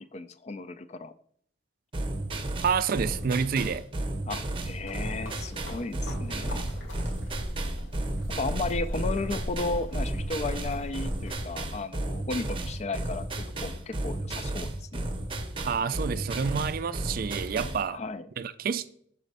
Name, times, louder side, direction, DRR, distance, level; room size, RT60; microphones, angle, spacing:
voice 1, 0.0-1.1 4.3-6.6 8.4-13.3 13.6-15.1 17.9-18.3, left 3 dB, 35° left, 0.3 m, -34 dB
sound 1, 1.9-17.9, right 1 dB, 30° right, 0.8 m, -33 dB
voice 2, 2.6-3.8 15.6-18.0 18.4-18.9, right 6 dB, 50° right, 0.3 m, -28 dB
sound 2, 4.8-11.4, equal, 85° left, 2.2 m, -37 dB
6.1 x 4.2 x 5.3 m
head